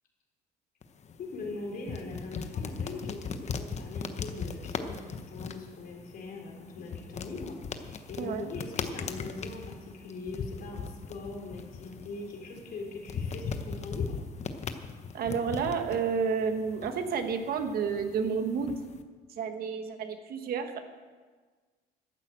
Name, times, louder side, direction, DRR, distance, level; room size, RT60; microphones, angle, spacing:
sound 1, 0.8-19.0, left 5 dB, 40° left, 1.0 m, -39 dB
voice 1, 1.2-14.2, left 2 dB, 60° left, 0 dB, 3.8 m, -41 dB
voice 2, 8.2-8.5 15.1-18.8 19.3-20.8, right 6 dB, 65° right, 7 dB, 1.4 m, -30 dB
12.0 x 9.0 x 7.7 m, 1.4 s
cardioid pair, 110°, 17 cm